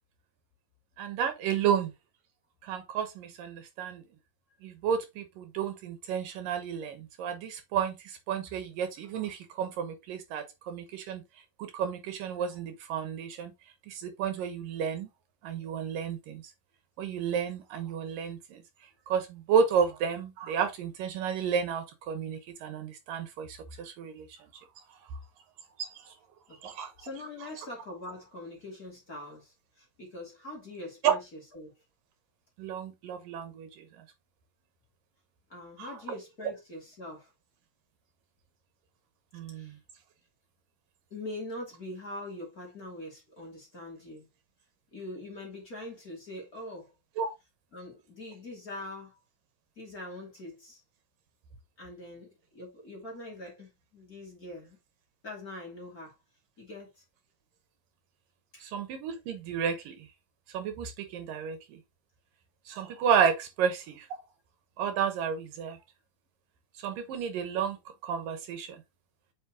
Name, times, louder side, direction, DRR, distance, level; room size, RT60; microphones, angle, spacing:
voice 1, 1.0-1.9 2.6-4.0 4.6-11.2 11.6-13.5 13.9-15.1 15.4-16.4 17.0-18.6 19.1-24.3 25.8-25.9 26.6-26.9 31.0-31.1 32.6-33.9 39.3-39.7 47.2-47.3 58.6-60.0 60.5-61.8 62.7-64.2 64.8-65.8 66.8-67.8 68.0-68.8, right 7 dB, 75° right, 2.8 m, -31 dB
voice 2, 27.0-31.7 35.5-37.3 39.5-39.8 41.1-44.3 44.9-46.9 47.7-49.2 49.8-50.8 51.8-54.8 55.2-56.2 56.6-57.0 58.5-58.7, left 1 dB, 25° left, 2.8 m, -43 dB
8.3 x 5.4 x 2.9 m
omnidirectional pair, 4.1 m